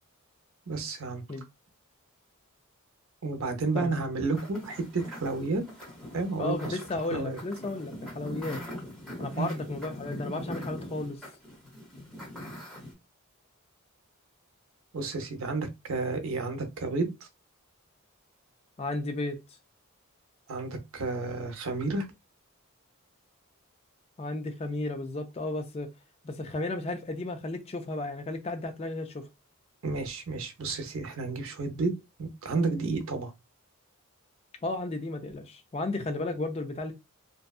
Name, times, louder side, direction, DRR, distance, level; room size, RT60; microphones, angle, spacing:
voice 1, 0.7-1.2 3.2-5.6 6.1-6.8 7.1-7.4 9.4-9.5 14.9-17.1 20.5-22.1 29.8-31.9 32.2-33.3, right 3 dB, 70° right, 0.6 m, -31 dB
sound 1, 4.3-12.9, left 1 dB, 5° left, 0.9 m, -42 dB
voice 2, 6.4-8.6 9.2-11.2 18.8-19.4 24.2-25.9 26.2-29.3 34.6-36.9, left 2 dB, 30° left, 0.3 m, -33 dB
2.6 x 2.2 x 2.3 m
head